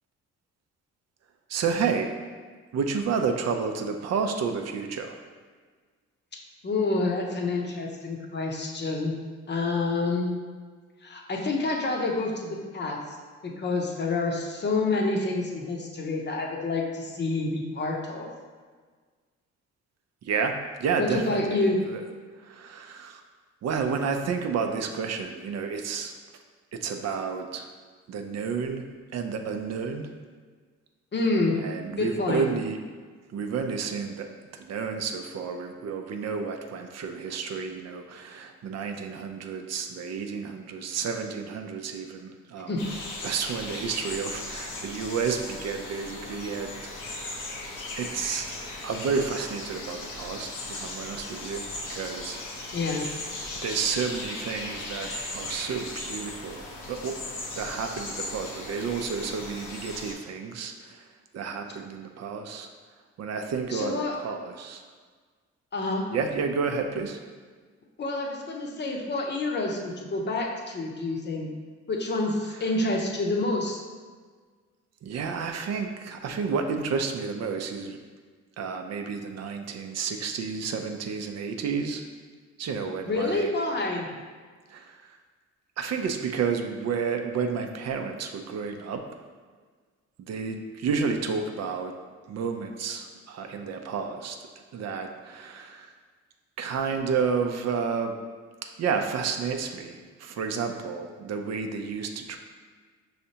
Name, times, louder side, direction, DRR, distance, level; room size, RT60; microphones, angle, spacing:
voice 1, 1.5-2.2 2.7-5.2 20.2-22.0 22.4-23.2 23.6-26.2 26.7-27.7 28.1-28.9 29.1-30.1 31.6-32.8 33.3-42.7 43.2-47.6 48.0-48.5 48.8-52.4 53.5-57.2 57.5-62.7 63.2-64.8 66.1-67.2 72.5-72.7 75.0-78.0 78.6-82.0 82.6-83.5 84.7-85.2 85.8-89.1 90.2-91.9 92.3-94.4 94.7-95.9 96.6-98.2 98.8-102.4, right 5 dB, 60° right, 5 dB, 0.5 m, -31 dB
voice 2, 6.6-9.1 9.5-10.4 11.0-13.2 13.4-18.3 21.0-21.8 31.1-31.6 32.0-32.5 42.7-42.8 52.7-53.1 63.7-64.1 65.7-66.1 68.0-71.5 71.9-73.8 83.1-84.1, left 2 dB, 35° left, 0 dB, 0.7 m, -28 dB
sound 1, 42.8-60.1, left 2 dB, 85° left, 0.8 m, -37 dB
5.5 x 3.2 x 2.8 m, 1.5 s
cardioid pair, 90°, 30 cm